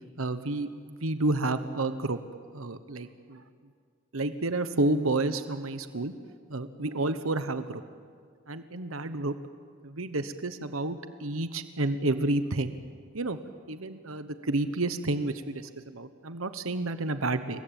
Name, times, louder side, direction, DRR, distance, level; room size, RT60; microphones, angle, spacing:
voice 1, 0.2-2.2 2.5-3.4 4.1-6.1 6.5-7.8 8.5-9.3 9.8-12.8 13.1-13.4 13.7-17.6, right 2 dB, 90° right, 10 dB, 1.2 m, -30 dB
28.0 x 22.0 x 9.1 m, 2.1 s
head